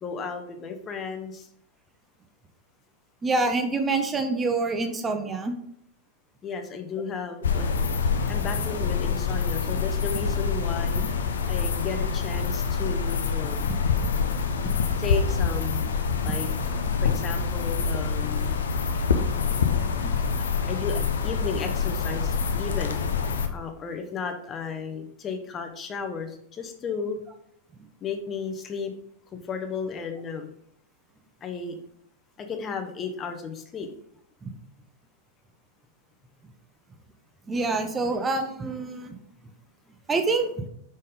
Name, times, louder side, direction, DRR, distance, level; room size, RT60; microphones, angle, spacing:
voice 1, 0.0-1.5 6.4-7.7 8.3-11.0 11.5-13.8 15.0-15.8 16.2-16.5 17.0-18.6 20.7-23.0 23.5-27.2 28.0-28.9 29.3-30.5 31.4-31.8 32.4-33.9, left 5 dB, 25° left, 6 dB, 0.8 m, -34 dB
voice 2, 3.2-5.6 11.0-11.1 19.5-19.6 34.4-34.5 37.5-39.2 40.1-40.7, right 3 dB, 15° right, 6 dB, 0.6 m, -26 dB
sound 1, 7.4-23.5, left 5 dB, 65° left, 0.6 m, -26 dB
5.4 x 5.4 x 3.6 m, 0.70 s
figure-of-eight pair, 90°, 0 cm